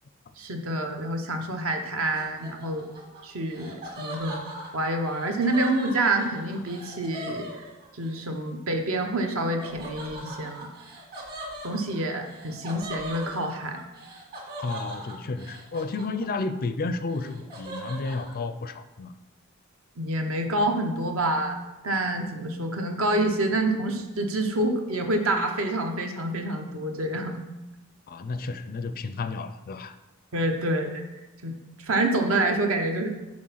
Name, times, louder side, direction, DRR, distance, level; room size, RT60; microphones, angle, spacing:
voice 1, 0.4-2.8 3.2-4.4 4.7-7.5 8.0-10.7 11.6-13.8 20.0-21.6 21.8-27.4 30.3-31.0 31.4-31.5 31.8-33.1, right 1 dB, 65° right, 4 dB, 0.9 m, -27 dB
Laughter, 2.1-8.2 9.6-16.6 16.9-18.3, right 1 dB, 45° right, 1.9 m, -40 dB
voice 2, 14.6-19.1 28.1-30.0, left 3 dB, 45° left, 11 dB, 0.4 m, -32 dB
6.3 x 4.3 x 5.7 m, 1.0 s
head